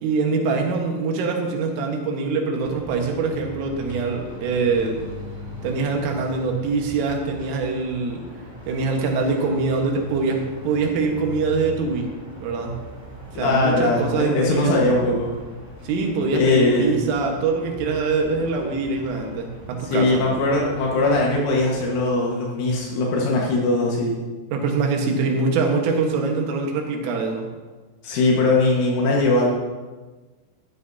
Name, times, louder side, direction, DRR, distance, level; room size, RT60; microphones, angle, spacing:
voice 1, 0.0-5.0 5.6-8.2 8.7-12.0 12.4-12.8 13.4-15.0 15.8-20.3 24.5-27.5, right 4 dB, 85° right, 2 dB, 4.0 m, -24 dB
sound 1, 2.6-22.0, equal, 10° right, 1.1 m, -40 dB
voice 2, 13.4-15.4 16.3-17.0 19.8-24.2 28.0-29.5, left 2 dB, 80° left, -3 dB, 4.0 m, -20 dB
13.0 x 12.5 x 2.8 m, 1.3 s
omnidirectional pair, 5.6 m